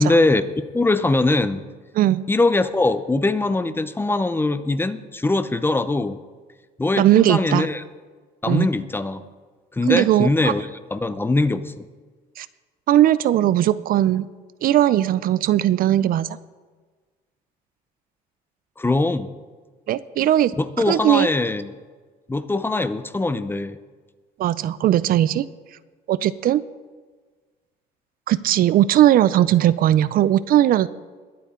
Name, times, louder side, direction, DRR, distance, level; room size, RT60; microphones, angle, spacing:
voice 1, 0.0-1.7 2.3-6.2 6.8-7.8 8.4-9.2 9.7-10.6 10.9-11.8 18.8-19.3 20.6-21.7 22.3-23.8, left 2 dB, 15° left, 13 dB, 0.6 m, -21 dB
voice 2, 7.0-7.7 8.5-8.7 9.9-10.5 12.4-12.5 12.9-14.3 14.6-16.3 19.9-20.5 20.9-21.3 24.4-25.5 26.1-26.6 28.3-30.9, right 12 dB, 60° right, 17 dB, 0.4 m, -18 dB
21.0 x 8.5 x 3.7 m, 1.4 s
cardioid pair, 110°, 17 cm